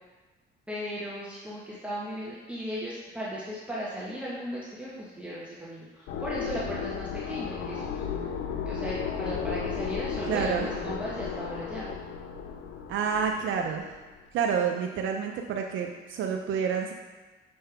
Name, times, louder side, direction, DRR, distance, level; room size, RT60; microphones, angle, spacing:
voice 1, 0.7-7.9 8.7-11.9, equal, 5° right, -7 dB, 1.3 m, -36 dB
sound 1, 6.1-13.9, left 7 dB, 90° left, 0.6 m, -34 dB
voice 2, 10.3-10.7 12.9-13.9 14.3-16.9, right 6 dB, 80° right, 2 dB, 0.6 m, -28 dB
6.5 x 5.4 x 3.4 m, 1.2 s
cardioid pair, 90°, 20 cm